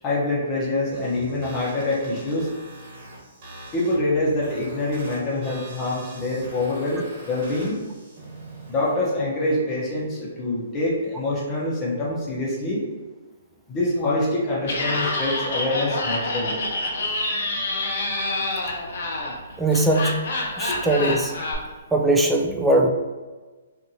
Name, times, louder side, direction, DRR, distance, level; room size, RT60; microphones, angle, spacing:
voice 1, 0.0-2.5 3.7-7.8 8.7-12.8 13.7-16.6 20.7-20.8, left 2 dB, 25° left, -6 dB, 0.7 m, -25 dB
sound 1, 0.9-8.9, right 1 dB, 45° right, 1.3 m, -41 dB
Laughter, 14.6-21.5, left 2 dB, 65° left, 0.6 m, -27 dB
voice 2, 19.6-20.2 20.6-21.4 21.9-22.9, right 1 dB, 5° right, 0 dB, 0.3 m, -20 dB
2.6 x 2.5 x 2.7 m, 1.3 s
hypercardioid pair, 140°, 0 cm